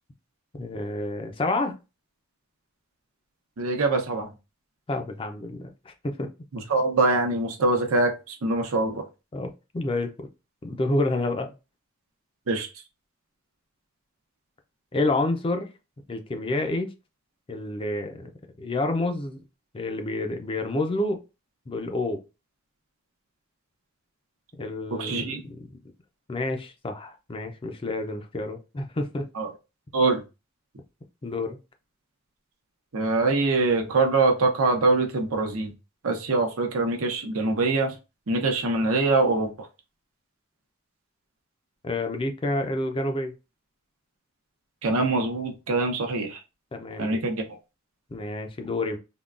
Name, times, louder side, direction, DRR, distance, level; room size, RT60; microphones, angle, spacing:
voice 1, 0.5-1.7 4.9-6.3 9.3-10.1 10.6-11.5 14.9-15.7 16.1-16.9 17.5-18.3 18.6-19.4 19.7-21.2 21.7-22.2 24.6-25.6 26.3-29.2 31.2-31.6 41.8-43.3 46.7-47.2 48.1-49.0, left 2 dB, 25° left, 0.4 m, -29 dB
voice 2, 3.6-4.3 6.7-9.0 12.5-12.7 24.9-25.4 29.4-29.5 29.9-30.2 32.9-35.7 36.0-37.9 38.3-39.5 44.8-46.4 47.0-47.4, right 3 dB, 80° right, 0.7 m, -24 dB
3.6 x 2.2 x 2.4 m
head